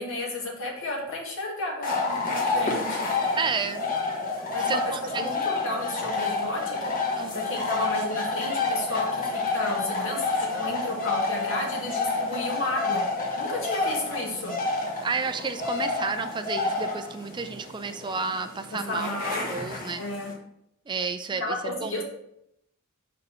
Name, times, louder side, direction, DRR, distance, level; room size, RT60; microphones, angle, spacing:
voice 1, 0.0-3.1 4.5-6.9 7.3-13.0 13.4-14.6 18.7-19.4 20.0-20.3 21.4-22.0, left 1 dB, 65° left, -1 dB, 1.8 m, -32 dB
sound 1, 1.8-20.3, left 3 dB, 40° left, 1.4 m, -29 dB
voice 2, 3.4-4.0 4.7-5.3 7.2-7.4 15.0-19.2 19.5-20.0 20.9-21.9, right 4 dB, 20° right, 8 dB, 0.4 m, -31 dB
5.5 x 5.3 x 4.2 m, 0.77 s
head